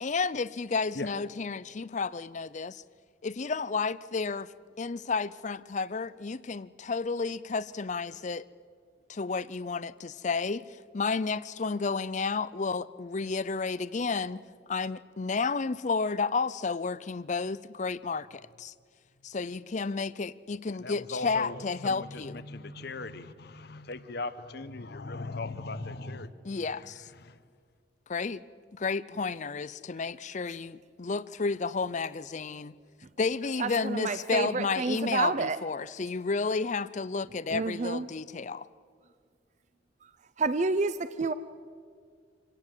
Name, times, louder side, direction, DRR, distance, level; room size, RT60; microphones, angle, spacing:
voice 1, 0.0-2.8 3.2-4.5 4.8-8.5 9.1-10.7 10.9-14.4 14.7-18.7 19.2-22.3 26.5-27.1 28.1-28.4 28.7-32.7 33.2-38.7, left 4 dB, 40° left, 18 dB, 0.5 m, -31 dB
voice 2, 20.7-26.3 26.8-27.4, left 3 dB, 55° left, 13 dB, 1.0 m, -39 dB
voice 3, 33.6-35.6 37.5-38.1 40.4-41.3, right 4 dB, 35° right, 13 dB, 0.5 m, -29 dB
26.0 x 17.5 x 7.5 m, 2.1 s
head